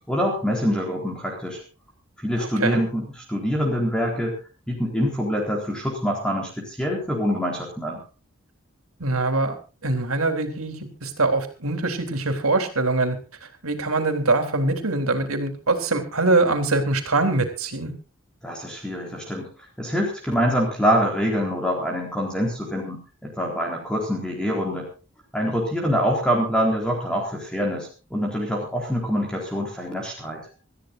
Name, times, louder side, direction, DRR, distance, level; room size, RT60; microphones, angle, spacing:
voice 1, 0.1-1.6 2.2-4.4 4.7-8.0 18.4-19.5 19.8-24.9 25.3-30.4, equal, 5° left, -1 dB, 4.0 m, -25 dB
voice 2, 2.4-2.8 9.0-9.6 9.8-17.9, right 3 dB, 90° right, 6 dB, 3.7 m, -23 dB
26.5 x 14.5 x 2.6 m, 0.33 s
head